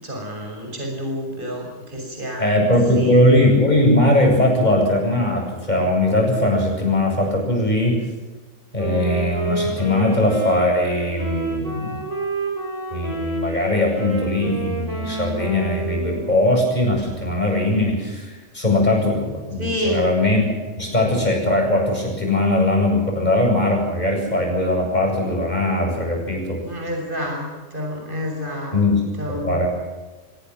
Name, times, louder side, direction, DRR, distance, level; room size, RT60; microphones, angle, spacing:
voice 1, 0.0-2.5 2.9-3.2 19.6-20.0 26.6-28.8 29.2-29.5, equal, 40° right, 0 dB, 6.8 m, -28 dB
voice 2, 2.4-8.0 8.7-11.9 12.9-20.4 20.8-26.6 28.7-29.0 29.3-29.7, left 1 dB, 35° left, 1 dB, 8.2 m, -20 dB
Wind instrument woodwind instrument, 8.7-16.8, right 2 dB, 70° right, 8.2 m, -29 dB
24.5 x 17.5 x 7.7 m, 1.3 s
omnidirectional pair, 1.3 m